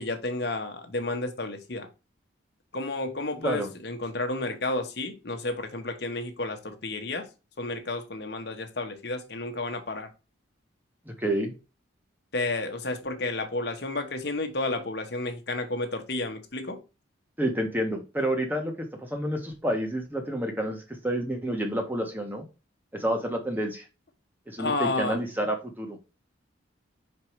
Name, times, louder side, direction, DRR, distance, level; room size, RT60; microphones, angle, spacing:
voice 1, 0.0-1.9 2.7-7.3 7.6-10.1 12.3-16.8 24.6-25.2, left 2 dB, 55° left, 1.2 m, -31 dB
voice 2, 11.0-11.5 17.4-22.4 22.9-23.8 24.5-26.0, right 1 dB, 10° right, 1.3 m, -29 dB
5.3 x 4.6 x 4.6 m
head